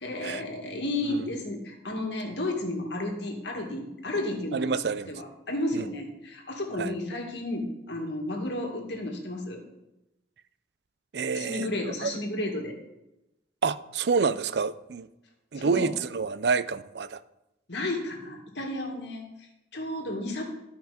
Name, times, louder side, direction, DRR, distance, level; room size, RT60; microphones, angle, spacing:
voice 1, 0.0-4.8 5.1-9.6 11.3-12.8 15.5-15.9 17.7-20.4, left 1 dB, 75° left, 1 dB, 2.1 m, -32 dB
voice 2, 4.5-5.1 5.7-5.9 6.8-6.9 11.1-12.1 13.6-15.1 15.5-17.2, right 5 dB, 65° right, 15 dB, 0.4 m, -28 dB
13.0 x 5.7 x 5.0 m, 0.92 s
head